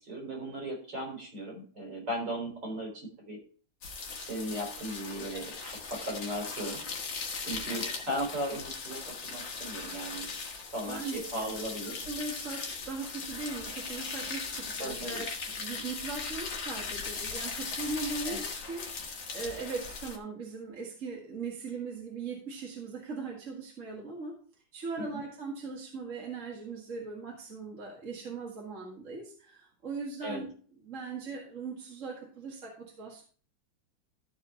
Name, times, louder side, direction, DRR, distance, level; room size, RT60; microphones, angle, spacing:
voice 1, 0.0-3.4 4.2-6.8 7.4-10.3 10.7-12.0 14.8-15.2 18.3-18.4 25.0-25.2 30.2-30.4, equal, 65° right, -1 dB, 4.3 m, -37 dB
sound 1, 3.8-20.2, left 4 dB, 75° left, 2.1 m, -39 dB
voice 2, 5.3-5.8 7.7-7.9 10.9-11.6 12.0-15.3 15.6-24.4 24.7-30.5 30.8-33.2, right 4 dB, 40° right, -1 dB, 2.1 m, -39 dB
13.5 x 4.8 x 4.3 m, 0.42 s
omnidirectional pair, 2.1 m